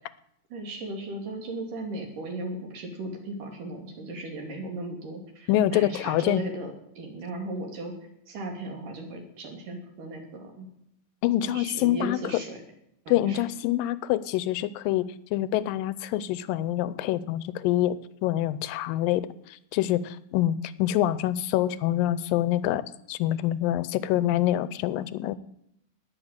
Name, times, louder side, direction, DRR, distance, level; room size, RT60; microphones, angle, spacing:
voice 1, 0.5-7.9 8.3-10.7 11.4-12.6 13.1-13.4, right 2 dB, 70° right, 2 dB, 4.4 m, -36 dB
voice 2, 5.5-6.5 11.2-12.2 13.1-15.0 15.3-19.2 19.7-22.8 23.1-25.4, left 13 dB, 90° left, 17 dB, 2.5 m, -26 dB
19.0 x 6.7 x 8.9 m, 0.77 s
omnidirectional pair, 3.9 m